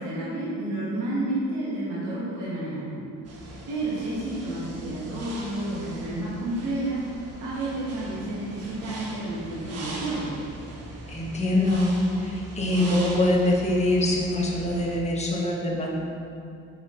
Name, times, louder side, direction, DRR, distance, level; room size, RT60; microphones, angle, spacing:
voice 1, 0.0-3.0 3.7-7.0 7.4-10.3, right 1 dB, 80° right, -8 dB, 1.7 m, -30 dB
sound 1, 3.2-15.0, right 2 dB, 55° right, 1.1 m, -40 dB
voice 2, 11.1-11.9 12.2-15.9, left 1 dB, 20° left, -3 dB, 1.2 m, -24 dB
6.2 x 5.8 x 3.9 m, 2.5 s
cardioid pair, 90°, 30 cm